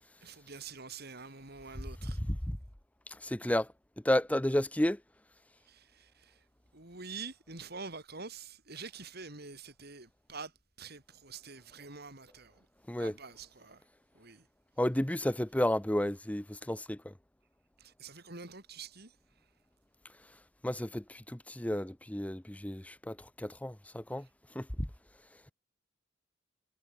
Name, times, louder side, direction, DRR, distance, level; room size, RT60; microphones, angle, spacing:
voice 1, 0.2-2.2 5.6-6.5 6.7-13.9 14.1-14.5 17.8-19.5 24.2-24.3, right 4 dB, 55° right, 6.9 m, -47 dB
voice 2, 3.1-3.7 4.0-5.0 12.9-13.1 14.8-17.1 20.6-24.3 24.5-24.9, left 1 dB, 10° left, 0.8 m, -32 dB
head